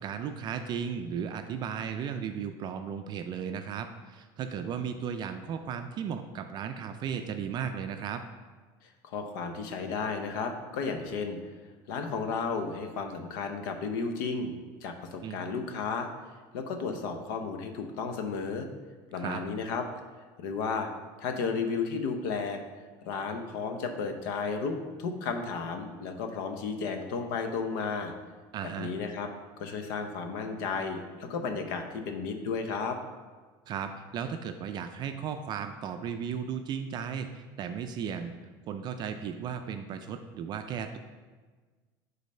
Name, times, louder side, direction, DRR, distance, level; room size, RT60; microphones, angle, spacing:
voice 1, 0.0-8.2 15.2-15.4 19.2-19.4 28.5-28.9 33.7-38.4 38.7-41.0, right 7 dB, 40° right, 7 dB, 0.4 m, -35 dB
voice 2, 9.0-11.4 11.9-14.5 14.8-16.1 16.5-18.7 19.1-19.8 20.4-20.9 21.2-22.6 23.0-28.1 28.8-29.3 29.6-33.0, left 5 dB, 85° left, 6 dB, 0.8 m, -33 dB
5.2 x 4.0 x 5.5 m, 1.4 s
supercardioid pair, 130°, 11 cm